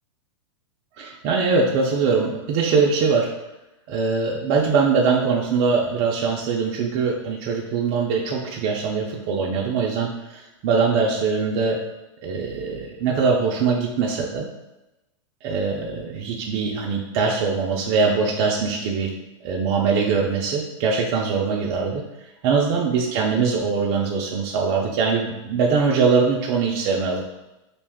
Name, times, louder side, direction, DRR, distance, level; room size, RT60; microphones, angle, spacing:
voice 1, 1.0-3.3 3.9-11.8 12.2-14.5 15.4-19.1 19.4-22.0 22.4-27.2, right 5 dB, 45° right, -1 dB, 0.4 m, -22 dB
2.5 x 2.3 x 3.3 m, 0.97 s
hypercardioid pair, 130°, 16 cm